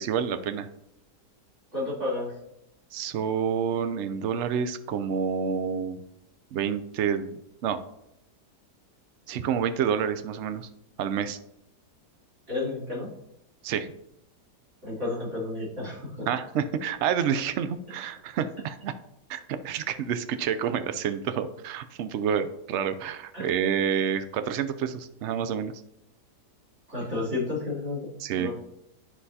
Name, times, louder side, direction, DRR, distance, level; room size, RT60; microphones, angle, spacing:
voice 1, 0.0-0.7 2.9-6.0 6.5-7.8 9.3-10.7 11.0-11.4 13.6-13.9 16.3-18.9 19.3-25.7 28.2-28.5, right 7 dB, 70° right, 11 dB, 0.6 m, -28 dB
voice 2, 1.7-2.3 12.5-13.1 14.8-16.3 23.3-23.5 26.9-28.1 28.3-28.5, left 2 dB, 45° right, -6 dB, 3.5 m, -31 dB
9.9 x 5.9 x 2.8 m, 0.82 s
omnidirectional pair, 1.8 m